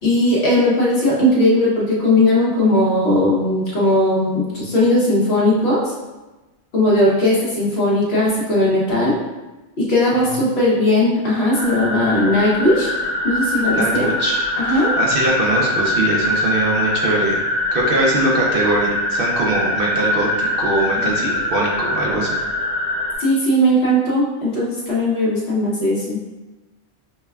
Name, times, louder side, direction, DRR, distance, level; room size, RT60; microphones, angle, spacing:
voice 1, 0.0-5.9 6.7-9.2 9.8-12.9 13.2-14.1 14.6-14.9 21.2-21.3 23.2-26.4, left 1 dB, 65° left, -5 dB, 1.1 m, -18 dB
sound 1, 11.5-23.1, left 1 dB, 35° left, 0.9 m, -22 dB
voice 2, 13.7-17.4 17.7-22.3, right 2 dB, 60° right, -3 dB, 0.8 m, -22 dB
5.4 x 2.1 x 2.3 m, 1.1 s
omnidirectional pair, 1.2 m